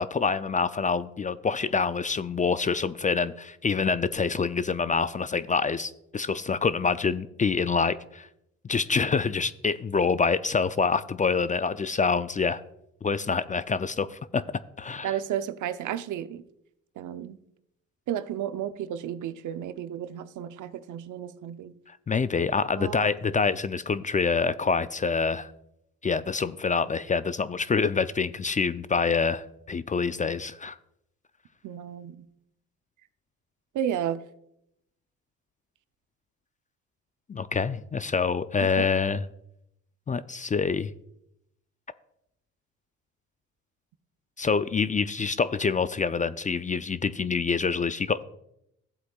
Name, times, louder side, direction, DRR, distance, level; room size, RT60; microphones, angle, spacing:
voice 1, 0.0-8.3 8.6-12.6 13.0-14.4 14.8-15.1 22.1-25.5 26.0-30.8 37.3-39.3 40.1-40.9 44.4-48.2, left 5 dB, 25° left, 0.4 m, -26 dB
voice 2, 15.0-16.4 17.0-17.4 18.1-21.7 22.8-23.2 31.6-32.3 33.7-34.2 38.6-38.9, right 10 dB, 60° right, 0.7 m, -32 dB
15.0 x 7.9 x 2.4 m
supercardioid pair, 60°, 34 cm